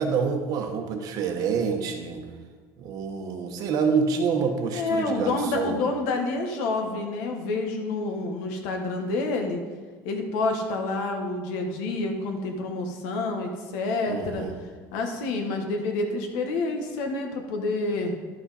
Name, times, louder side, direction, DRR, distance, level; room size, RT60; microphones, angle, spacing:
voice 1, 0.0-2.2 2.8-5.8 14.1-14.5, right 5 dB, 45° right, 4 dB, 1.0 m, -27 dB
voice 2, 4.7-9.6 10.0-14.4 14.9-18.1, left 3 dB, 75° left, 4 dB, 1.4 m, -28 dB
11.5 x 5.9 x 4.2 m, 1.5 s
cardioid pair, 170°, 9 cm